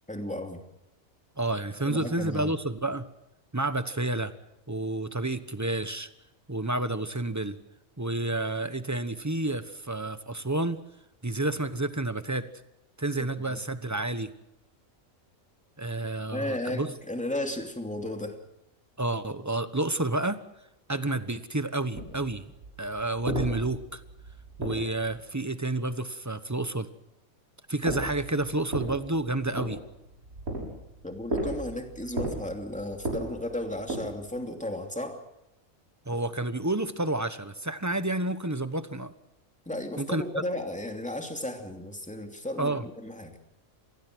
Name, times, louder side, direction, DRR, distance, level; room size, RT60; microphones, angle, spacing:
voice 1, 0.1-0.6 1.9-2.6 13.2-13.6 16.3-18.4 31.0-35.2 39.7-43.4, left 1 dB, 5° left, 4 dB, 2.8 m, -34 dB
voice 2, 1.4-3.1 3.5-4.3 4.7-6.1 6.5-7.6 8.0-10.8 11.2-12.5 13.0-14.3 15.8-16.9 19.0-20.4 20.9-22.4 22.8-24.0 24.6-26.9 27.7-29.8 36.1-39.1 40.0-40.2 42.6-42.8, right 2 dB, 15° right, 11 dB, 1.0 m, -30 dB
sound 1, 21.9-25.3 27.8-34.5, right 1 dB, 90° right, 7.6 m, -36 dB
27.0 x 19.5 x 6.3 m, 0.93 s
omnidirectional pair, 1.5 m